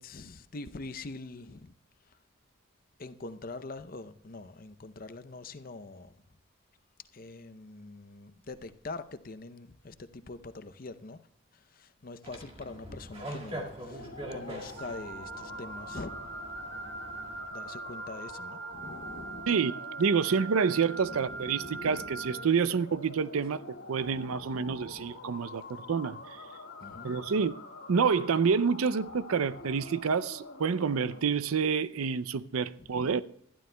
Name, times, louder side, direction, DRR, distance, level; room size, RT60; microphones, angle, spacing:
voice 1, 0.0-1.7 2.0-2.2 3.0-6.2 7.1-11.3 11.5-16.4 17.5-19.5 21.0-22.2 24.0-25.1 26.8-27.2 32.8-33.2, left 3 dB, 40° left, 0.6 m, -44 dB
sound 1, 12.2-17.4, right 1 dB, 30° right, 1.9 m, -43 dB
sound 2, 13.9-31.2, left 3 dB, 60° left, 1.6 m, -46 dB
Wind instrument woodwind instrument, 14.8-22.5, right 4 dB, 65° right, 1.6 m, -42 dB
voice 2, 20.0-26.2 27.0-27.5 27.9-33.2, right 6 dB, 90° right, 0.5 m, -28 dB
20.5 x 12.5 x 2.2 m
head